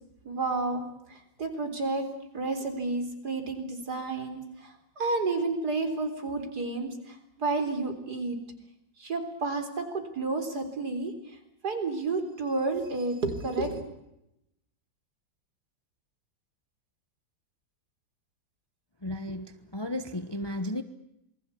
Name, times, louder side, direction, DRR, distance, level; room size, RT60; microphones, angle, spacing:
voice 1, 0.2-2.1 2.3-8.4 9.0-11.4 11.6-13.8, right 3 dB, 60° right, 7 dB, 4.4 m, -31 dB
voice 2, 19.0-20.8, left 1 dB, 15° left, 10 dB, 0.9 m, -34 dB
27.5 x 20.5 x 8.5 m, 0.85 s
omnidirectional pair, 1.9 m